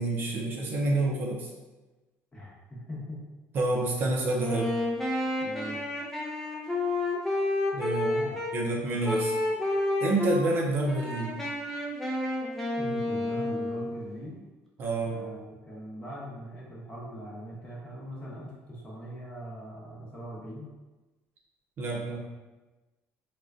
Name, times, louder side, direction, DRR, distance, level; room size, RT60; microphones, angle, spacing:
voice 1, 0.0-1.5 3.5-4.7 7.7-8.2 8.5-9.3 10.0-11.4 14.8-15.3 21.8-22.2, right 2 dB, 45° right, -1 dB, 0.5 m, -28 dB
voice 2, 2.3-3.2 5.4-5.8 8.0-8.4 12.7-14.4 15.1-20.7, equal, 20° left, -5 dB, 0.9 m, -41 dB
Wind instrument woodwind instrument, 4.4-8.5 9.0-10.4 10.8-14.1, left 2 dB, 5° left, 0.5 m, -30 dB
3.7 x 2.2 x 2.4 m, 1.2 s
cardioid pair, 135°, 5 cm